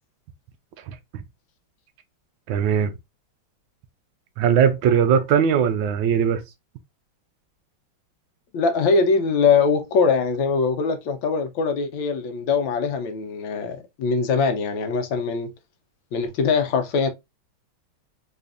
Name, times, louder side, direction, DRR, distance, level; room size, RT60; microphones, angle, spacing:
voice 1, 0.9-1.2 2.5-2.9 4.4-6.4, right 8 dB, 75° right, 1.3 m, -20 dB
voice 2, 8.5-15.5 16.1-17.1, left 5 dB, 75° left, 1.3 m, -22 dB
4.1 x 3.1 x 2.4 m
omnidirectional pair, 2.3 m